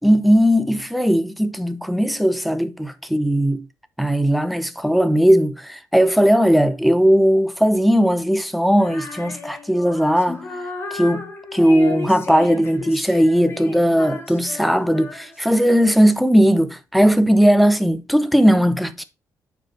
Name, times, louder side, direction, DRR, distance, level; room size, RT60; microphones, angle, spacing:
voice 1, 0.0-3.6 4.0-10.4 10.9-11.3 11.5-19.0, equal, ahead, 0.8 m, -17 dB
Female singing, 8.8-16.2, left 3 dB, 40° left, 2.0 m, -34 dB
9.2 x 4.6 x 4.3 m
cardioid pair, 145°, 6 cm